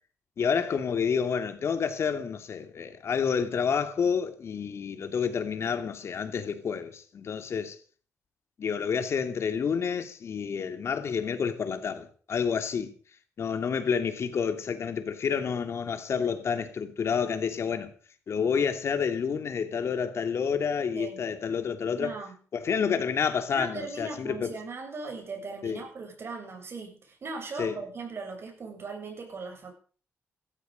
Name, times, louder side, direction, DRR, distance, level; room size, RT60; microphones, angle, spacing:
voice 1, 0.4-7.8 8.6-12.9 13.4-17.9 18.3-22.1 22.5-24.6 25.6-25.8 27.6-27.7, left 6 dB, 65° left, 2.7 m, -29 dB
voice 2, 20.9-21.2 22.0-22.4 23.5-29.7, right 4 dB, 55° right, 7.4 m, -38 dB
16.0 x 13.5 x 5.3 m
cardioid pair, 65°, 5 cm